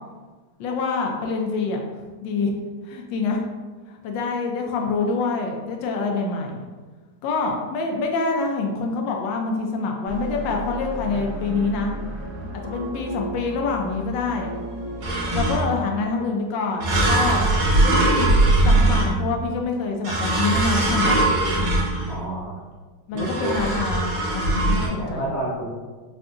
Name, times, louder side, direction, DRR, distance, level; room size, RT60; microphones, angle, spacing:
voice 1, 0.6-1.8 2.2-2.5 2.8-3.5 3.9-6.7 7.2-11.9 12.6-14.5 15.3-17.5 17.8-18.3 18.6-21.4 23.1-25.3, left 4 dB, 75° left, 2 dB, 1.2 m, -26 dB
sound 1, 10.1-15.6, right 1 dB, 55° right, 1.4 m, -34 dB
sound 2, 15.0-15.8 16.8-19.5 20.0-22.3 23.2-24.9, right 2 dB, 80° right, 1.6 m, -20 dB
voice 2, 22.1-22.5 23.1-23.6 24.9-25.7, right 1 dB, 10° left, -10 dB, 0.9 m, -29 dB
4.6 x 2.5 x 2.5 m, 1.4 s
omnidirectional pair, 2.1 m